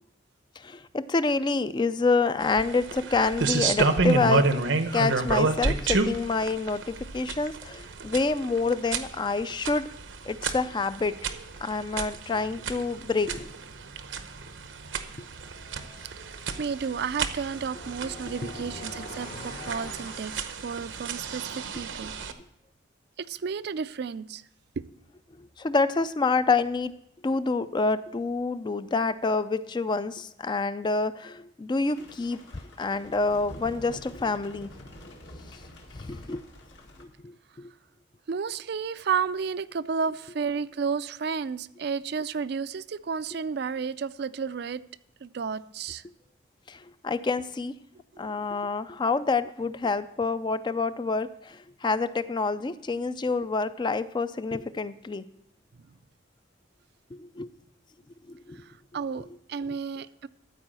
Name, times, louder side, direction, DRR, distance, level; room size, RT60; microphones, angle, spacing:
voice 1, 0.6-4.5 4.9-9.9 10.3-11.2 11.6-13.5 18.4-18.5 25.4-27.0 27.2-32.4 32.8-34.7 35.9-36.5 37.0-37.7 46.7-47.8 48.2-55.2 57.1-57.5 58.3-58.6 59.7-59.8, left 3 dB, 25° left, 13 dB, 0.3 m, -27 dB
sound 1, 2.4-22.3, right 4 dB, 80° right, 0.8 m, -30 dB
sound 2, 15.2-20.7, left 3 dB, 45° left, 1.1 m, -46 dB
voice 2, 16.2-22.1 23.2-24.4 24.8-24.9 38.3-44.8 45.2-46.0 48.2-48.5 58.9-60.3, right 6 dB, 55° right, 14 dB, 0.4 m, -32 dB
sound 3, 31.8-37.0, left 1 dB, 75° left, 1.9 m, -47 dB
13.5 x 4.8 x 7.5 m, 0.77 s
head